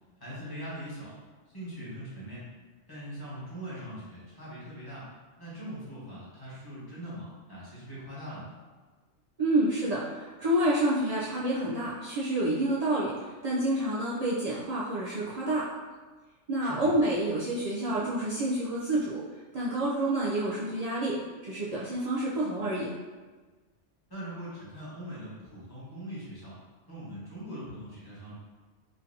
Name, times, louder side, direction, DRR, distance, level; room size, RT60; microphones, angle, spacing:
voice 1, 0.2-1.1 1.5-2.5 2.9-5.1 5.4-8.5 16.6-16.9 24.1-26.5 26.9-28.3, equal, 20° left, -10 dB, 1.2 m, -41 dB
voice 2, 9.4-15.6 16.5-19.2 19.5-21.2 21.4-22.9, right 1 dB, 75° right, -7 dB, 0.3 m, -28 dB
3.8 x 2.7 x 2.7 m, 1.4 s
omnidirectional pair, 1.3 m